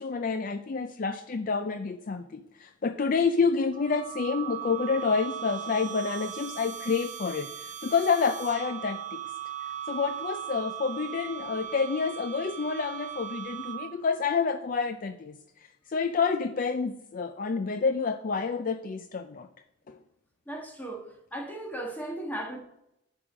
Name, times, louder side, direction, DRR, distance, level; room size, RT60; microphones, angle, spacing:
voice 1, 0.0-9.2 9.9-15.4 15.9-19.5 19.9-20.0, left 5 dB, 45° left, 0.4 m, -28 dB
sound 1, 3.7-14.1, right 11 dB, 40° right, 0.6 m, -38 dB
voice 2, 20.4-22.6, right 1 dB, 10° left, 1.6 m, -36 dB
10.0 x 4.9 x 6.1 m
head